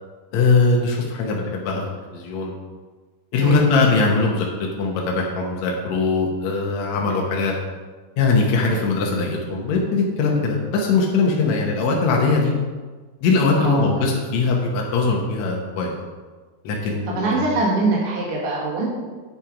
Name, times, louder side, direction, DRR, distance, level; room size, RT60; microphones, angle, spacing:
voice 1, 0.3-1.8 2.1-2.5 3.3-4.5 4.8-7.5 8.2-12.5 13.2-15.9 16.6-17.4, left 4 dB, 75° left, -1 dB, 1.6 m, -20 dB
voice 2, 3.4-3.7 13.5-14.0 17.1-18.9, right 3 dB, 45° right, -4 dB, 2.3 m, -23 dB
9.1 x 5.7 x 5.0 m, 1.4 s
omnidirectional pair, 4.6 m